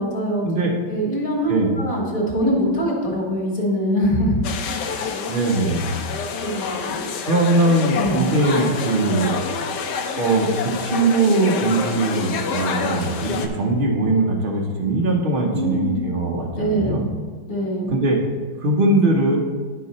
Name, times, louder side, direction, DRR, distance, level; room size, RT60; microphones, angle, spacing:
voice 1, 0.0-0.5 0.9-4.4 6.3-7.0 8.0-8.2 15.5-16.0 16.6-17.0 17.5-17.9, equal, 45° left, -2 dB, 1.8 m, -23 dB
voice 2, 1.5-1.8 5.3-6.0 7.2-9.4 10.2-17.0 17.9-18.2 18.6-19.4, right 2 dB, 75° right, -1 dB, 0.4 m, -20 dB
sound 1, 4.4-13.5, left 5 dB, 70° left, 1.1 m, -28 dB
10.0 x 4.6 x 4.1 m, 1.5 s
omnidirectional pair, 2.2 m